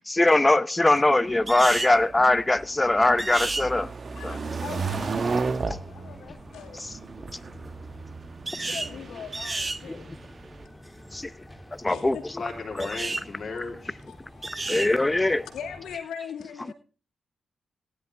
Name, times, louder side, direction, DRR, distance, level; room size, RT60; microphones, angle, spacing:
voice 1, 0.1-3.9 4.2-4.4 6.8-6.9 9.9-10.0 11.1-11.3 11.8-12.2 12.8-12.9 14.7-15.5, left 2 dB, 20° left, 0.8 m, -21 dB
sound 1, 1.3-10.6, right 4 dB, 50° right, 1.3 m, -34 dB
sound 2, 1.5-2.0 3.2-3.7 8.5-8.9 9.3-9.8 12.8-13.3 14.4-14.9, right 3 dB, 30° right, 0.8 m, -31 dB
voice 2, 4.1-5.3 5.9-7.0 8.4-10.1 11.2-11.3 11.9-12.2 12.8-13.0 13.5-13.7 14.1-14.5 15.5-16.7, left 7 dB, 90° left, 2.3 m, -41 dB
sound 3, 5.1-16.0, equal, 5° left, 2.2 m, -48 dB
voice 3, 8.8-9.3 12.3-14.0, left 4 dB, 45° left, 3.4 m, -36 dB
15.5 x 11.0 x 3.5 m
cardioid pair, 55°, 0 cm